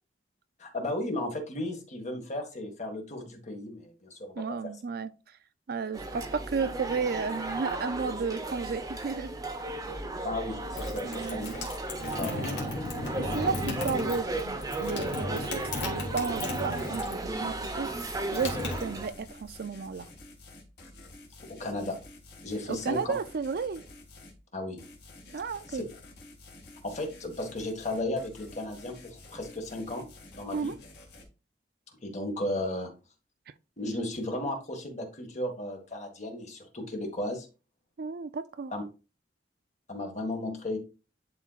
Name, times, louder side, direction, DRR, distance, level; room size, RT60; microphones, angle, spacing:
voice 1, 0.6-4.4 10.2-11.6 12.2-12.4 21.5-22.0 22.4-23.1 24.5-24.8 25.7-25.8 26.8-30.1 30.3-30.7 32.0-32.9 33.8-37.5 38.7-38.8 39.9-40.8, left 1 dB, 40° left, 1.8 m, -34 dB
voice 2, 4.4-5.1 5.7-9.4 11.0-11.5 12.2-12.6 13.2-20.1 22.7-23.8 25.3-25.9 30.5-30.7 38.0-38.7, right 5 dB, 55° right, 0.4 m, -33 dB
sound 1, 5.9-19.1, right 2 dB, 20° right, 0.9 m, -35 dB
sound 2, 10.7-17.3 17.6-19.4, left 2 dB, 80° left, 2.3 m, -36 dB
sound 3, 16.5-17.0 17.4-24.4 24.8-31.2, left 2 dB, 65° left, 2.1 m, -51 dB
10.5 x 4.4 x 2.4 m
head